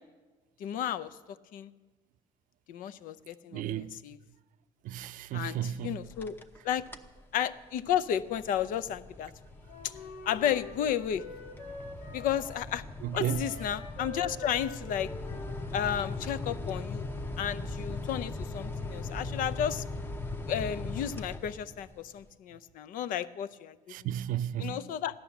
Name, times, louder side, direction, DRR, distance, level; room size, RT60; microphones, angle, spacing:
voice 1, 0.6-1.1 1.5-1.7 2.7-4.2 5.3-6.4 6.6-6.8 7.3-9.3 10.3-11.2 12.1-12.8 13.1-15.1 15.7-17.0 17.4-19.8 20.5-23.8 24.6-25.2, left 9 dB, 70° left, 0.6 m, -32 dB
voice 2, 3.5-4.0 4.8-6.0 13.0-13.5 23.9-24.8, right 11 dB, 70° right, 0.5 m, -33 dB
sound 1, 6.0-6.6 6.9-7.2 7.6-21.9, left 3 dB, 15° left, 0.8 m, -40 dB
Wind instrument woodwind instrument, 9.7-12.7 13.1-16.6, left 3 dB, 90° left, 2.4 m, -45 dB
15.5 x 11.0 x 7.1 m
cardioid pair, 155°, 14 cm